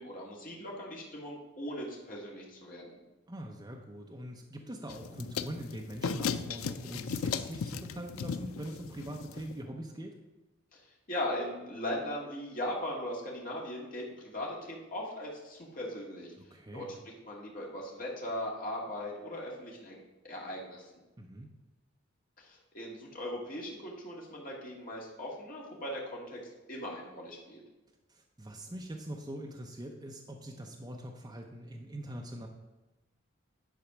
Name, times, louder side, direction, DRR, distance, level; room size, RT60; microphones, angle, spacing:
voice 1, 0.0-3.0 10.7-10.8 11.1-16.3 16.7-16.9 17.3-20.0 20.2-20.9 22.4-26.4 26.7-27.6, left 1 dB, 40° left, -3 dB, 2.0 m, -39 dB
voice 2, 3.3-10.1 16.5-16.9 21.2-21.5 28.1-32.5, right 1 dB, 20° right, 1 dB, 0.6 m, -43 dB
sound 1, 4.9-9.6, left 6 dB, 85° left, 0.5 m, -36 dB
10.0 x 4.2 x 6.0 m, 1.1 s
head